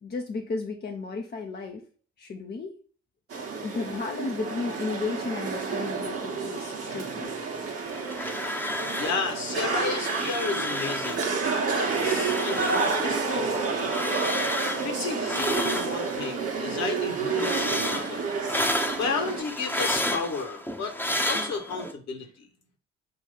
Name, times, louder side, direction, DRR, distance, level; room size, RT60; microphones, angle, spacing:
voice 1, 0.0-1.8 2.2-2.7 3.6-7.3, left 4 dB, 30° left, 3 dB, 0.9 m, -34 dB
sound 1, 3.3-19.4, right 4 dB, 40° right, 1.5 m, -30 dB
sound 2, 7.9-9.3 9.5-11.3 11.6-16.4 16.7-21.9, left 1 dB, 5° left, 1.1 m, -31 dB
voice 2, 8.9-11.3 11.7-14.1 14.8-18.3 19.0-20.9 21.2-22.5, left 4 dB, 50° left, 4 dB, 1.6 m, -33 dB
6.6 x 2.7 x 5.6 m, 0.42 s
figure-of-eight pair, 45°, 34 cm